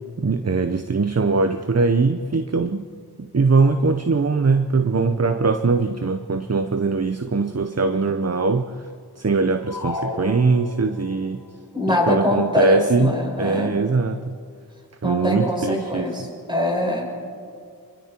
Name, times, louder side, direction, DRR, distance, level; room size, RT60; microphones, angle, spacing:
voice 1, 0.2-2.8 3.2-8.7 9.2-11.4 11.9-13.1 13.4-14.3 15.0-16.3, right 4 dB, 40° right, 9 dB, 0.9 m, -21 dB
sound 1, 9.7-11.1, left 2 dB, 85° left, 2.9 m, -32 dB
voice 2, 11.7-13.8 15.0-17.0, left 1 dB, 10° right, -2 dB, 7.2 m, -23 dB
26.5 x 23.0 x 4.5 m, 2.3 s
wide cardioid pair, 45°, 40 cm